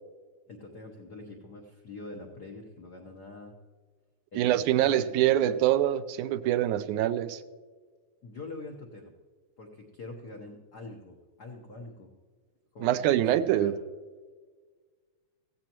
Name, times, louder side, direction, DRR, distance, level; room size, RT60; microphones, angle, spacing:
voice 1, 0.5-3.5 4.3-5.5 8.2-9.1 9.6-12.1 12.7-13.8, left 2 dB, 90° left, 1 dB, 0.8 m, -45 dB
voice 2, 4.4-7.4 12.8-13.7, right 12 dB, 90° right, 12 dB, 2.1 m, -25 dB
16.0 x 15.0 x 3.0 m, 1.5 s
omnidirectional pair, 3.5 m